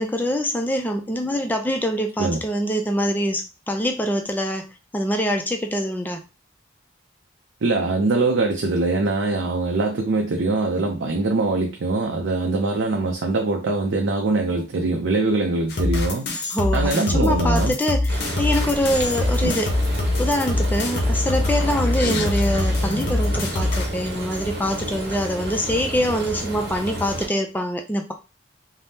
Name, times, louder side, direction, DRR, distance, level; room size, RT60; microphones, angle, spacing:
voice 1, 0.0-4.7 4.9-6.2 16.5-19.7 20.2-28.1, equal, 10° left, 4 dB, 0.3 m, -24 dB
voice 2, 7.6-16.3 16.7-17.7 19.4-19.6 22.0-22.3, right 3 dB, 80° right, 2 dB, 0.5 m, -23 dB
sound 1, 15.7-23.9, left 2 dB, 55° left, 0.6 m, -23 dB
Frying (food), 18.1-27.3, right 1 dB, 55° right, 0.9 m, -31 dB
3.4 x 2.0 x 2.7 m, 0.29 s
head